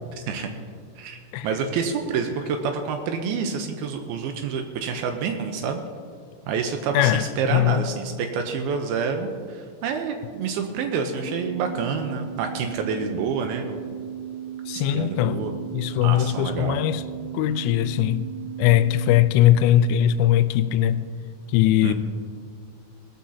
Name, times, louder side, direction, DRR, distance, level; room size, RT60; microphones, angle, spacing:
voice 1, 1.0-5.8 6.5-13.9 14.7-15.6 16.0-16.8 21.8-21.9, right 5 dB, 90° right, 2.2 m, -28 dB
voice 2, 6.9-7.9 14.7-15.4 15.7-17.0 17.3-18.3 18.6-21.0 21.5-21.9, left 12 dB, 85° left, 2.8 m, -20 dB
sound 1, 11.2-19.1, right 10 dB, 40° right, 5.2 m, -36 dB
19.0 x 14.5 x 2.8 m
omnidirectional pair, 5.4 m